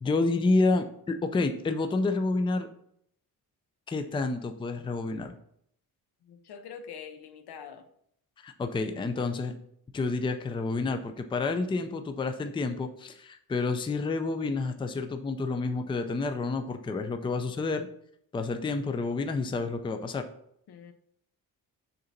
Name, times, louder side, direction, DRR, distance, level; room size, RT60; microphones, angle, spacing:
voice 1, 0.0-2.7 3.9-5.3 8.4-9.5 9.9-17.9 18.3-20.3, left 3 dB, 15° left, 6 dB, 0.4 m, -29 dB
voice 2, 6.2-7.9 20.7-20.9, left 7 dB, 90° left, 7 dB, 1.1 m, -44 dB
6.6 x 3.9 x 5.7 m, 0.69 s
wide cardioid pair, 180°, 38 cm